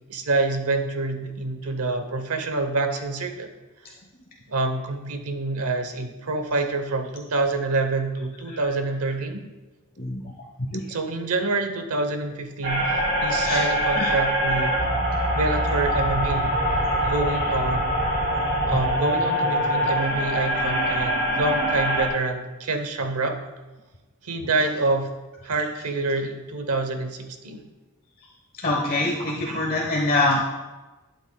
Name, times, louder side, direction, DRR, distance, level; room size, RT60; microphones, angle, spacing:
voice 1, 0.1-3.5 3.8-3.9 4.5-9.4 10.9-14.8 15.3-16.5 17.0-18.0 18.7-23.4 24.2-25.1 25.4-27.7 29.2-30.1, right 3 dB, 90° right, 7 dB, 0.9 m, -27 dB
sound 1, 12.6-22.1, equal, 60° right, 3.1 m, -24 dB
voice 2, 28.6-30.4, left 2 dB, 45° left, -2 dB, 1.1 m, -24 dB
12.0 x 8.1 x 2.3 m, 1.2 s
head